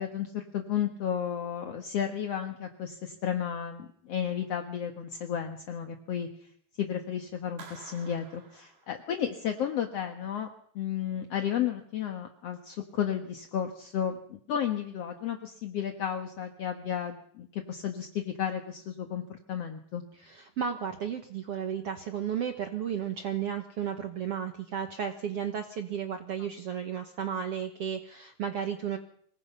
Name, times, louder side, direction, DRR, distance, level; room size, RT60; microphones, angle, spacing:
voice 1, 0.0-6.5 6.8-10.5 10.8-20.0 26.4-26.5, left 9 dB, 55° left, 5 dB, 1.8 m, -33 dB
Clapping, 7.6-9.5, right 5 dB, 50° right, 4.3 m, -51 dB
voice 2, 20.2-29.0, right 8 dB, 80° right, 6 dB, 1.3 m, -33 dB
25.5 x 21.5 x 5.6 m, 0.63 s
omnidirectional pair, 4.7 m